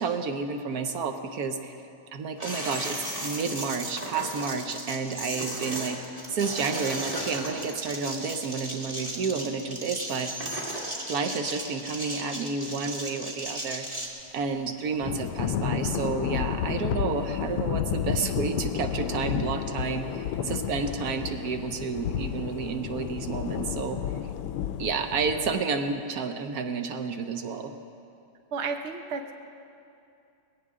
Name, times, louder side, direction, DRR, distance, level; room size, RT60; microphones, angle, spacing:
voice 1, 0.0-1.7 2.1-6.0 6.3-10.3 11.1-13.9 14.3-24.0 24.8-27.7, right 5 dB, 60° right, 7 dB, 1.0 m, -30 dB
sound 1, 2.4-14.1, right 1 dB, 15° right, 1.7 m, -35 dB
Thunder / Rain, 15.0-25.6, left 9 dB, 90° left, 1.5 m, -31 dB
voice 2, 28.5-29.3, right 5 dB, 85° right, 5 dB, 0.6 m, -32 dB
21.0 x 17.0 x 3.7 m, 2.6 s
omnidirectional pair, 2.4 m